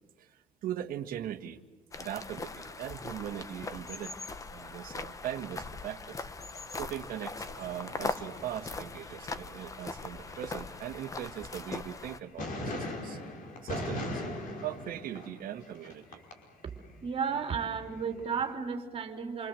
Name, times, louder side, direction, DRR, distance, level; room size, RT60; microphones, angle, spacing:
voice 1, 0.2-1.6 2.0-4.1 4.5-6.3 6.8-13.2 13.6-16.2, right 11 dB, 60° right, 6 dB, 1.8 m, -40 dB
sound 1, 1.9-12.2, left 3 dB, 20° left, 1.2 m, -40 dB
sound 2, 7.3-9.5 9.8-12.1 12.4-16.3 16.7-18.4, left 1 dB, 55° left, 5.3 m, -41 dB
voice 2, 17.0-19.5, right 6 dB, 35° right, 5 dB, 3.3 m, -33 dB
28.0 x 25.5 x 7.8 m, 1.1 s
cardioid pair, 155°, 17 cm